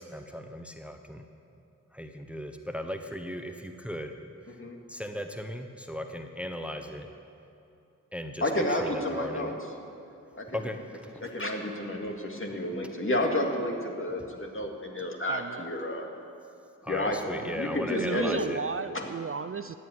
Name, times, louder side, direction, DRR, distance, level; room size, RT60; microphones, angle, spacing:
voice 1, 0.1-1.2 1.9-4.2 4.9-7.1 8.1-9.5 10.5-11.3 12.0-12.1 12.3-12.6 12.8-12.9 14.2-14.3 14.8-14.9 16.8-18.6, equal, 5° right, 5 dB, 1.0 m, -37 dB
voice 2, 8.4-9.5 10.4-10.6 11.2-16.1 16.9-18.5 18.9-19.1, left 1 dB, 40° left, 1 dB, 2.2 m, -30 dB
voice 3, 15.2-15.6 17.9-19.7, right 6 dB, 40° right, 12 dB, 0.4 m, -34 dB
14.0 x 8.5 x 9.6 m, 2.7 s
cardioid pair, 45°, 33 cm